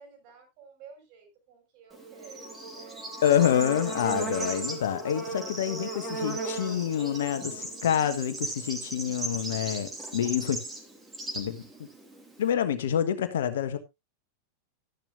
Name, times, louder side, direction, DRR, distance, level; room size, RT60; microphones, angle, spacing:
voice 1, 0.0-3.1, right 6 dB, 45° right, 6.3 m, -52 dB
Bird / Insect, 1.9-12.5, right 2 dB, 15° right, 3.0 m, -36 dB
voice 2, 3.2-10.6 11.3-11.6 12.4-13.8, left 9 dB, 60° left, 1.4 m, -27 dB
13.0 x 10.5 x 2.6 m
figure-of-eight pair, 90°, 0 cm